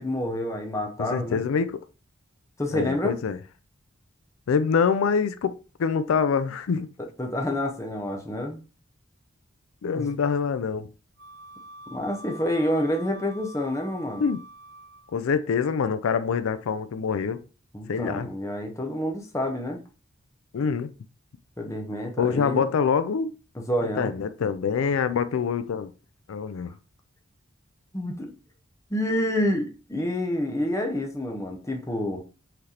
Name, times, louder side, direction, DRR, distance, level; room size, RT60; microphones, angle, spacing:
voice 1, 0.0-1.4 2.6-3.1 7.2-8.6 10.0-10.1 11.9-14.3 17.7-19.8 21.6-22.7 23.7-24.1 27.9-28.3 28.9-32.2, left 1 dB, 15° left, 0.8 m, -28 dB
voice 2, 1.0-1.8 2.7-3.4 4.5-6.9 9.8-10.9 14.2-14.4 15.1-17.4 17.9-18.3 20.5-20.9 22.2-23.3 24.0-25.9 26.3-26.7, left 6 dB, 80° left, 0.4 m, -25 dB
Wind instrument woodwind instrument, 11.2-15.2, equal, 45° right, 0.8 m, -46 dB
5.8 x 3.3 x 2.8 m
head